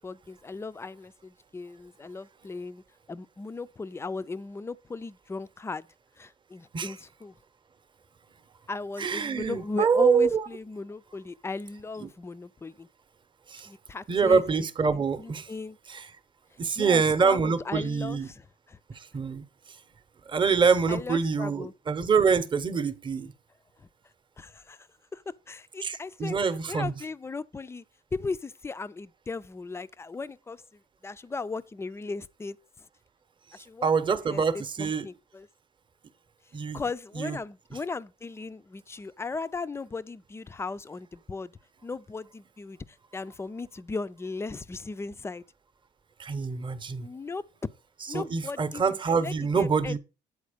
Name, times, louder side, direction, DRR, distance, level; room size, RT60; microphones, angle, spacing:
voice 1, 0.0-2.8 3.1-5.9 6.2-7.4 8.7-12.9 13.6-14.4 15.2-15.8 16.8-18.8 20.9-21.7 23.8-23.9 24.4-25.2 25.5-27.8 28.1-30.6 31.0-32.9 33.5-33.9 34.2-35.5 36.7-41.5 41.8-42.8 43.1-45.4 47.0-47.4 48.1-48.9 49.2-50.0, left 4 dB, 15° left, 0.3 m, -37 dB
voice 2, 9.0-10.4 12.0-12.1 13.5-13.7 14.1-15.5 15.9-16.1 16.6-18.3 18.9-19.4 20.3-23.3 25.8-26.9 33.8-35.0 36.5-36.8 37.1-37.4 46.2-47.1 48.1-50.0, right 5 dB, 30° right, 0.8 m, -25 dB
8.3 x 4.2 x 5.0 m
cardioid pair, 110°, 17 cm